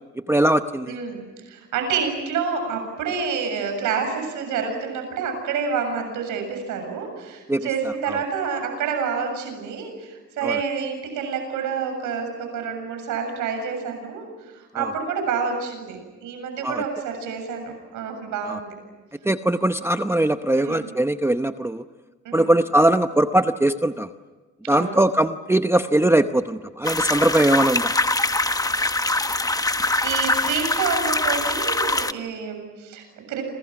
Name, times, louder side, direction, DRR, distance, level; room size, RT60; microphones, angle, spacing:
voice 1, 0.3-1.0 7.5-7.7 8.1-8.2 10.4-10.6 14.8-14.9 16.6-16.8 18.5-18.6 19.2-21.8 22.3-24.1 24.7-28.0, right 1 dB, 10° right, 9 dB, 0.8 m, -20 dB
voice 2, 0.9-18.8 20.6-20.9 22.2-22.5 24.6-25.0 29.7-33.4, right 6 dB, 90° right, 5 dB, 7.3 m, -28 dB
sound 1, 26.8-32.1, left 2 dB, 10° left, 1.1 m, -23 dB
29.5 x 27.0 x 6.1 m, 1.3 s
cardioid pair, 90°, 30 cm